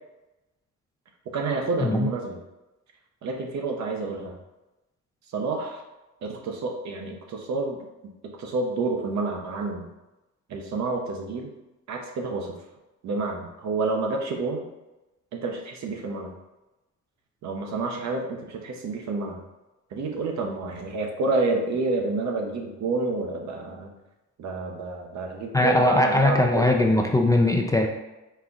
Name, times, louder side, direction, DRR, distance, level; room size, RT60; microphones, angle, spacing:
voice 1, 1.3-2.4 3.2-4.3 5.3-5.8 6.2-7.8 8.2-9.9 10.5-11.5 11.9-12.5 13.0-14.6 15.3-16.3 17.4-19.4 19.9-23.9 24.4-26.7, right 3 dB, 65° right, 2 dB, 0.8 m, -29 dB
voice 2, 25.5-27.9, left 2 dB, 10° left, 2 dB, 0.3 m, -20 dB
4.3 x 2.3 x 3.8 m, 1.0 s
cardioid pair, 90°, 30 cm